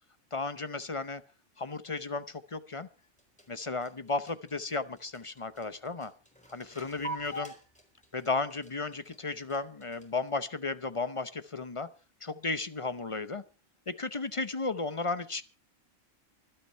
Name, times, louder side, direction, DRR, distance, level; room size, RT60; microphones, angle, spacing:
voice 1, 0.3-1.2 1.6-2.9 3.5-6.1 6.5-7.5 8.1-11.9 12.2-13.4 13.9-15.4, left 3 dB, 30° left, 0.7 m, -34 dB
sound 1, 3.0-10.3, right 2 dB, 5° left, 4.2 m, -45 dB
25.0 x 9.0 x 4.4 m
omnidirectional pair, 1.4 m